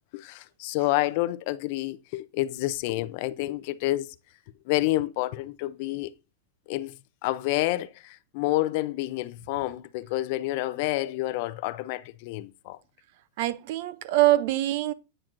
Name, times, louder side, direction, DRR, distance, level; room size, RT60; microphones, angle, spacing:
voice 1, 0.1-4.1 4.7-6.1 6.7-6.9 7.2-12.8, left 17 dB, 50° left, 0.5 m, -29 dB
voice 2, 13.4-14.9, right 15 dB, 55° right, 0.5 m, -24 dB
8.8 x 5.9 x 2.5 m
supercardioid pair, 155°, 0 cm